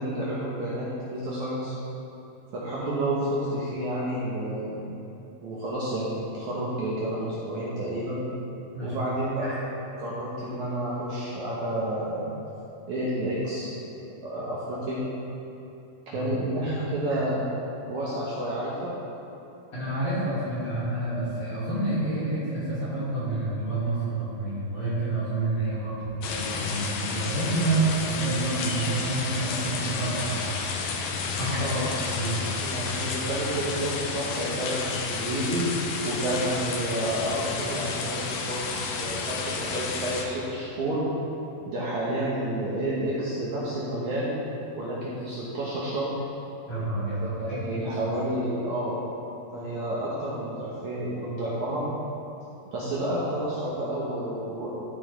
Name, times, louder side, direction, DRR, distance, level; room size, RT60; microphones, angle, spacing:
voice 1, 0.0-1.7 2.5-4.8 5.4-8.2 8.8-12.3 12.9-13.7 14.2-15.0 16.1-17.5 17.9-18.9 31.6-31.9 32.6-35.7 36.0-41.0 41.6-44.4 44.7-46.1 47.4-49.0 49.5-51.8 52.7-54.7, right 1 dB, 65° right, -7 dB, 2.1 m, -30 dB
voice 2, 19.7-30.4 31.3-31.8 32.1-32.5 46.7-47.8, right 2 dB, 40° left, -10 dB, 2.9 m, -28 dB
sound 1, 26.2-40.2, left 4 dB, 75° left, 2.5 m, -31 dB
12.5 x 7.6 x 3.4 m, 2.8 s
omnidirectional pair, 4.4 m